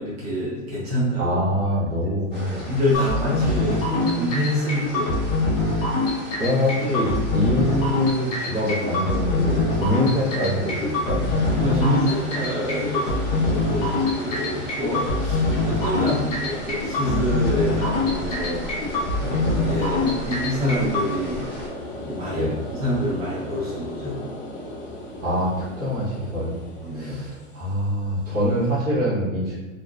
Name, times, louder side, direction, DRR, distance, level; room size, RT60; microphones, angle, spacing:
voice 1, 0.0-1.4 2.7-3.7 4.2-5.1 11.6-18.6 19.2-21.4 22.0-22.5 22.8-24.2 26.8-27.2, equal, 50° right, -7 dB, 0.9 m, -26 dB
voice 2, 1.2-3.0 3.4-4.2 6.3-11.6 15.9-16.1 22.3-22.6 25.2-26.5 26.9-29.6, equal, 25° right, -9 dB, 1.0 m, -25 dB
sound 1, 2.3-21.7, equal, 5° right, 0.8 m, -38 dB
sound 2, 2.9-21.1, left 2 dB, 30° left, 0.6 m, -24 dB
sound 3, 11.2-28.8, left 1 dB, 65° left, 1.0 m, -37 dB
2.7 x 2.2 x 2.4 m, 1.2 s
supercardioid pair, 160°, 38 cm